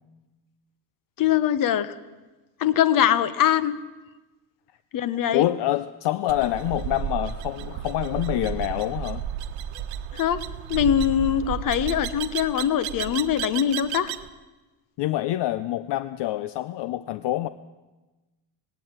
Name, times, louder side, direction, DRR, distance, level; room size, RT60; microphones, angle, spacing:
voice 1, 1.2-2.0 2.6-3.8 4.9-5.5 10.1-10.4 10.7-14.1, left 10 dB, 45° left, 15 dB, 1.1 m, -22 dB
voice 2, 5.3-9.2 15.0-17.5, left 14 dB, 65° left, 14 dB, 0.7 m, -26 dB
sound 1, 6.3-14.3, right 10 dB, 80° right, 1.1 m, -33 dB
19.0 x 16.5 x 9.0 m, 1.1 s
cardioid pair, 160°, 45 cm